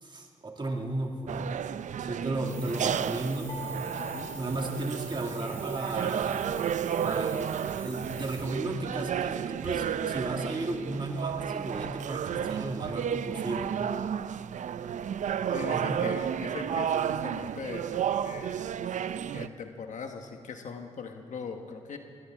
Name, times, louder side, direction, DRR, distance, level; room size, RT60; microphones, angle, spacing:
voice 1, 0.0-1.5 2.0-3.6 4.3-6.6 7.0-13.7 15.7-16.1, right 2 dB, 40° right, 1 dB, 2.2 m, -34 dB
sound 1, 1.3-19.5, right 8 dB, 75° right, 0.5 m, -32 dB
sound 2, 2.4-8.8, right 1 dB, 20° right, 4.1 m, -48 dB
sound 3, 3.5-5.6, right 2 dB, 30° left, 1.9 m, -44 dB
voice 2, 4.0-4.3 15.5-18.7 19.3-22.0, left 5 dB, 80° left, 5 dB, 1.3 m, -40 dB
22.0 x 18.0 x 3.6 m, 2.1 s
cardioid pair, 50°, 13 cm